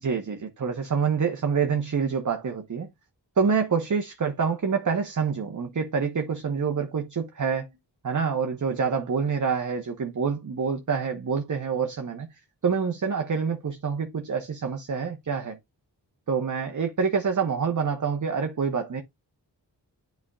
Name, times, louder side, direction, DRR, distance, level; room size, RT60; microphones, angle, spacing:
voice 1, 0.0-2.9 3.4-7.7 8.0-12.3 12.6-15.6 16.3-19.0, right 6 dB, 45° right, 1.1 m, -26 dB
9.6 x 4.6 x 2.3 m
cardioid pair, 45°, 43 cm